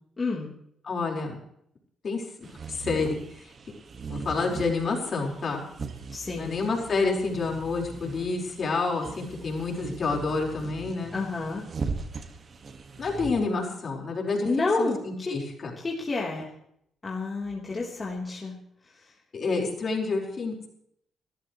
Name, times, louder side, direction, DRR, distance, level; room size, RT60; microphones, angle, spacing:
voice 1, 0.2-0.5 6.1-6.6 11.1-11.7 14.4-15.3 15.8-16.5 17.0-18.6, left 3 dB, 25° left, -4 dB, 3.7 m, -29 dB
voice 2, 0.8-1.4 2.0-3.5 4.1-5.6 6.4-11.2 13.0-14.5 14.8-15.7 19.3-20.5, left 4 dB, 45° left, 0 dB, 4.8 m, -29 dB
sound 1, 2.4-13.3, right 4 dB, 45° right, 1.8 m, -39 dB
23.5 x 14.0 x 3.2 m, 0.71 s
cardioid pair, 90°, 0 cm